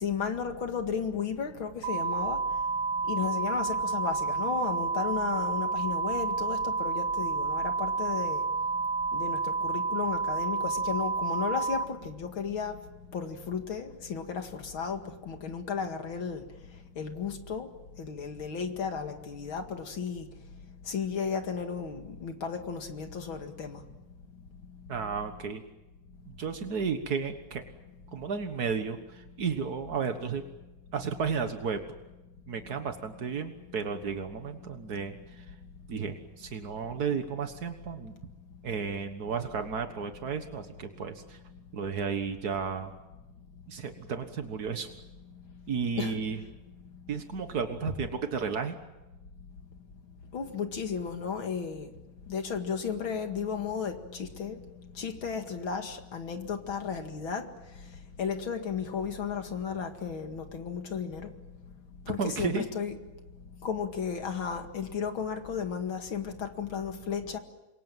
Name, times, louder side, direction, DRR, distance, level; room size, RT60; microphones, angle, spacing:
voice 1, 0.0-2.4 3.1-8.4 9.1-12.8 13.1-16.4 17.0-17.7 18.0-20.2 20.9-23.8 46.0-46.1 50.3-51.9 52.3-54.6 55.0-57.5 58.2-61.3 62.1-62.9 63.6-67.4, left 6 dB, 40° left, 2.4 m, -34 dB
sound 1, 1.8-11.8, right 4 dB, 90° right, 2.8 m, -30 dB
voice 2, 24.9-25.6 26.3-27.6 28.1-30.4 30.9-31.8 32.5-35.4 35.9-38.1 38.6-41.4 41.7-42.9 43.7-44.9 45.7-46.4 47.1-48.7 62.2-62.7, right 6 dB, 70° right, 0.9 m, -33 dB
28.0 x 23.5 x 7.5 m
omnidirectional pair, 3.9 m